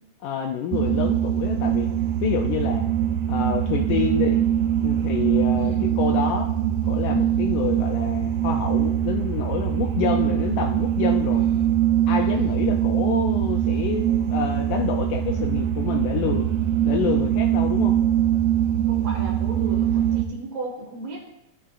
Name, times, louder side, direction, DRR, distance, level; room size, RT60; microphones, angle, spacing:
voice 1, 0.2-1.9 2.2-2.9 3.3-4.4 4.8-6.5 6.8-11.5 12.1-16.5 16.8-18.0, left 7 dB, 80° left, 3 dB, 1.9 m, -28 dB
sound 1, 0.7-20.2, right 10 dB, 80° right, 2.4 m, -22 dB
voice 2, 5.5-6.0 11.3-11.7 12.3-12.7 18.9-21.3, right 2 dB, 50° right, -1 dB, 2.5 m, -36 dB
12.5 x 8.4 x 2.4 m, 0.84 s
omnidirectional pair, 4.2 m